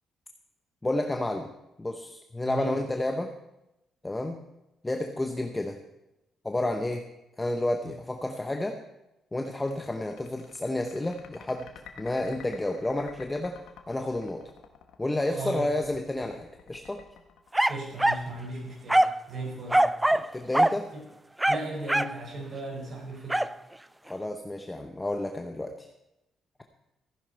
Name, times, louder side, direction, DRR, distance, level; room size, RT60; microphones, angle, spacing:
voice 1, 0.8-1.5 1.8-3.3 4.0-4.4 4.8-5.8 6.4-7.1 7.4-8.8 9.3-11.7 12.0-13.6 13.9-14.5 15.0-17.0 20.1-20.9 24.0-25.9, left 1 dB, 15° left, 5 dB, 1.0 m, -30 dB
voice 2, 2.5-2.8 7.8-7.9 15.3-15.7 17.7-19.9 20.9-21.0 21.5-23.5, right 2 dB, 55° right, 0 dB, 5.5 m, -37 dB
sound 1, 9.6-18.3, left 8 dB, 85° left, 1.2 m, -51 dB
sound 2, 17.5-18.3 18.9-19.2 19.7-20.3 20.5-20.8 21.4-22.2 23.3-23.5, right 1 dB, 10° right, 0.4 m, -23 dB
14.5 x 10.5 x 4.5 m, 0.91 s
cardioid pair, 90°, 0 cm